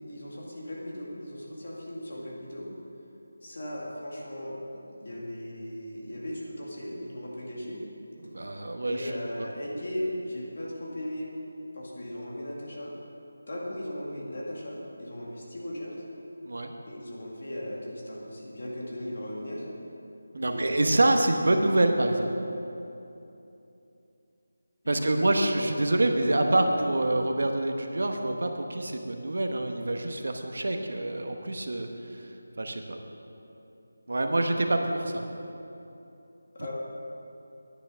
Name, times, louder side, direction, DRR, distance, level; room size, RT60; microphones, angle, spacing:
voice 1, 0.0-2.7 3.4-4.6 5.0-7.8 8.8-11.3 11.7-12.9 13.5-16.0 16.8-19.7 20.3-21.2 24.8-25.7 26.5-26.7 36.5-36.7, left 1 dB, 40° left, -3 dB, 2.1 m, -37 dB
voice 2, 8.2-9.1 16.4-16.7 20.3-22.3 24.9-31.9 32.2-32.3 32.6-33.0 34.1-35.2, right 2 dB, 55° right, 4 dB, 1.0 m, -26 dB
10.0 x 9.4 x 6.1 m, 2.9 s
figure-of-eight pair, 180°, 0 cm